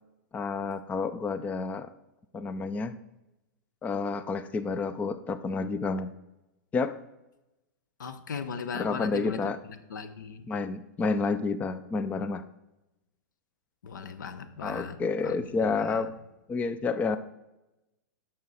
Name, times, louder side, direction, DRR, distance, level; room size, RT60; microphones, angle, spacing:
voice 1, 0.3-1.9 2.3-3.0 3.8-6.1 6.7-6.9 8.7-9.6 10.5-12.4 14.6-16.1 16.5-17.2, left 4 dB, 15° left, 13 dB, 0.4 m, -30 dB
voice 2, 8.0-9.4 9.9-10.5 13.8-15.0 15.2-15.4 15.6-16.0, left 6 dB, 85° left, 11 dB, 0.9 m, -37 dB
11.0 x 6.1 x 4.1 m, 0.97 s
hypercardioid pair, 130°, 10 cm